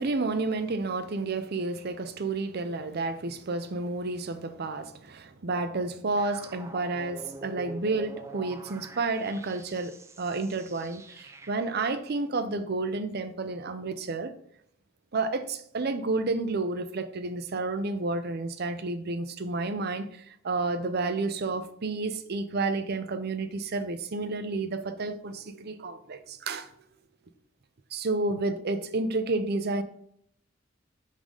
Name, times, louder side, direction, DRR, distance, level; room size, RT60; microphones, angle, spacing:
voice 1, 0.0-14.3 15.1-26.7 27.9-29.8, right 3 dB, 55° right, 0.6 m, -31 dB
sound 1, 6.2-11.9, right 2 dB, 15° right, 0.4 m, -45 dB
5.5 x 3.8 x 4.9 m
head